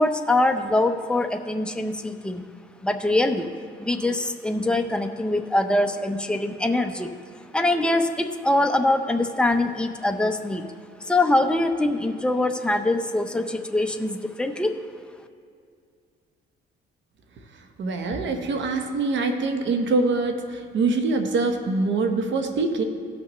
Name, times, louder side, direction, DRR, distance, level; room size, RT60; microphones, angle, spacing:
voice 1, 0.0-2.4 2.8-3.5 3.8-7.1 7.5-10.7 11.1-14.8, left 2 dB, 5° left, 5 dB, 0.7 m, -23 dB
voice 2, 17.8-22.8, right 3 dB, 70° right, 5 dB, 1.1 m, -24 dB
17.0 x 6.2 x 3.1 m, 2.3 s
cardioid pair, 90°, 20 cm